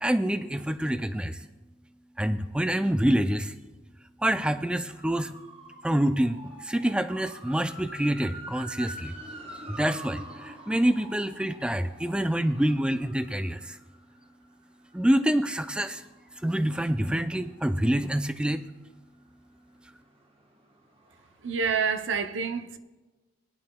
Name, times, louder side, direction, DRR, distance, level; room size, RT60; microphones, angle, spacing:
voice 1, 0.0-1.4 2.2-3.5 4.2-5.3 5.8-9.1 9.5-13.8 14.9-16.0 16.4-18.6, right 1 dB, 5° right, 0.3 m, -26 dB
sound 1, 4.9-18.7 19.1-21.7 21.9-22.0, right 1 dB, 30° right, 1.1 m, -47 dB
voice 2, 21.4-22.8, right 5 dB, 80° right, 0.6 m, -28 dB
19.0 x 10.5 x 2.2 m
head